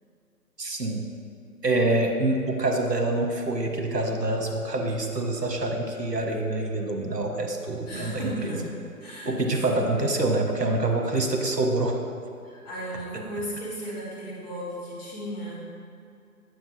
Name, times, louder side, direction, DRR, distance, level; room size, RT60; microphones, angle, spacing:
voice 1, 0.6-1.1 1.6-8.5 9.2-12.0, right 2 dB, 90° right, 2 dB, 1.2 m, -26 dB
voice 2, 7.9-8.7 9.0-9.9 12.4-15.6, right 1 dB, 15° left, -12 dB, 2.0 m, -35 dB
9.2 x 6.3 x 3.9 m, 2.4 s
figure-of-eight pair, 150°, 48 cm